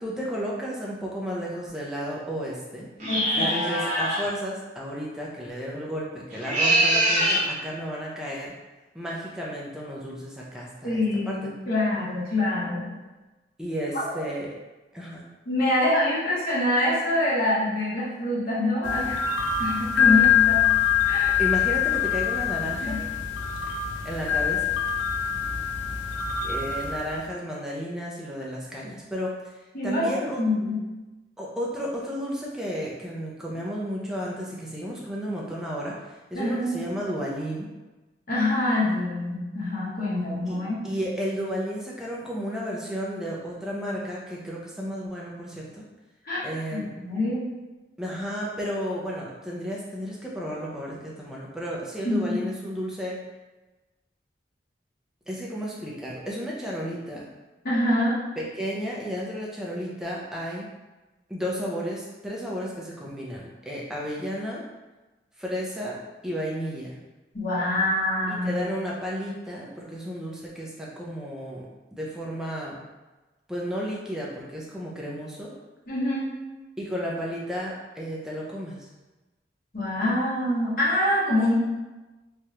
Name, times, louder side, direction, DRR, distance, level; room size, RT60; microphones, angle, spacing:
voice 1, 0.0-2.9 3.3-8.5 8.9-11.4 13.6-14.5 14.9-15.2 21.4-23.0 24.0-24.8 26.4-29.4 29.8-30.4 31.4-36.0 36.3-37.7 40.5-40.6 40.8-45.8 46.4-46.9 48.0-53.2 55.3-57.3 58.4-60.7 61.3-64.6 65.4-66.0 66.2-67.0 68.3-71.7 71.9-72.8 73.5-75.5 76.8-78.9, equal, 5° right, -5 dB, 0.5 m, -33 dB
sound 1, 3.0-4.3 6.3-7.5, right 1 dB, 40° right, 1.0 m, -23 dB
voice 2, 3.1-3.6 10.8-12.9 15.5-19.3 19.6-20.6 21.0-21.3 22.8-23.0 29.7-30.8 36.3-36.7 38.3-40.8 46.2-46.4 46.7-47.5 52.0-52.3 57.6-58.2 67.3-68.7 75.9-76.3 79.7-81.5, left 1 dB, 50° left, -8 dB, 0.9 m, -25 dB
sound 2, 18.8-27.2, left 8 dB, 85° left, 0.4 m, -24 dB
3.2 x 2.4 x 2.8 m, 1.1 s
head